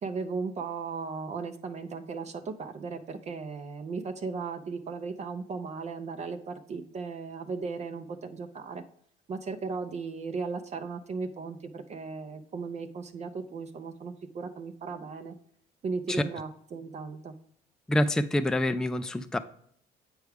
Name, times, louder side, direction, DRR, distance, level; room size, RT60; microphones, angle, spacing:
voice 1, 0.0-8.8 9.3-15.3 15.8-17.3, right 4 dB, 40° right, 7 dB, 0.6 m, -36 dB
voice 2, 17.9-19.4, left 1 dB, 5° left, 10 dB, 0.3 m, -26 dB
7.9 x 4.7 x 3.4 m, 0.64 s
cardioid pair, 110°, 17 cm